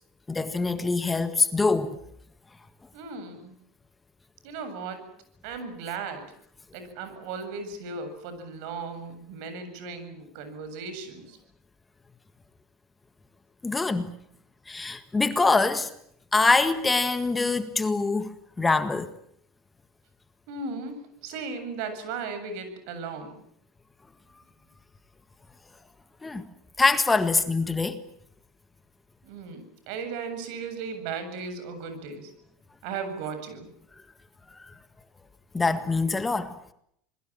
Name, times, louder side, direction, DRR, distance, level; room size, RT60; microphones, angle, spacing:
voice 1, 0.3-2.0 13.6-14.1 14.7-15.9 16.3-18.3 18.6-19.1 26.2-26.5 26.8-28.0 34.5-34.8 35.5-36.6, left 3 dB, 15° left, 1.7 m, -24 dB
voice 2, 2.9-3.5 4.4-5.0 5.4-6.2 6.7-11.4 20.5-23.4 29.2-32.3 32.8-33.7, right 4 dB, 70° right, 7.7 m, -36 dB
27.0 x 21.5 x 7.5 m
supercardioid pair, 120°, 0 cm